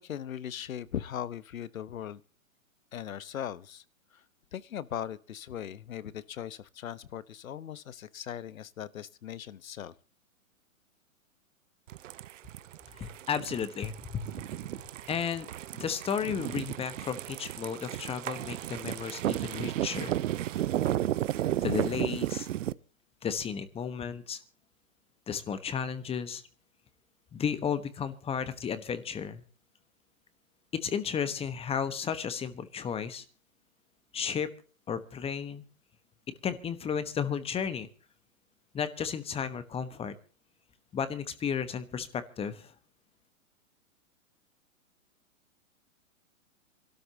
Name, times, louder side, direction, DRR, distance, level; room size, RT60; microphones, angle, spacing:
voice 1, 0.0-2.2 2.9-3.8 4.1-4.2 4.5-9.9, left 10 dB, 80° left, 1.1 m, -39 dB
sound 1, 11.9-22.7, right 13 dB, 65° right, 0.8 m, -33 dB
voice 2, 13.0-14.3 15.1-20.1 21.6-22.5 23.2-24.4 25.3-26.4 27.3-29.4 30.8-33.2 34.1-34.5 34.9-35.6 36.4-37.9 38.7-40.1 40.9-42.7, left 7 dB, 15° left, 1.1 m, -33 dB
27.0 x 12.5 x 2.8 m
hypercardioid pair, 130°, 40 cm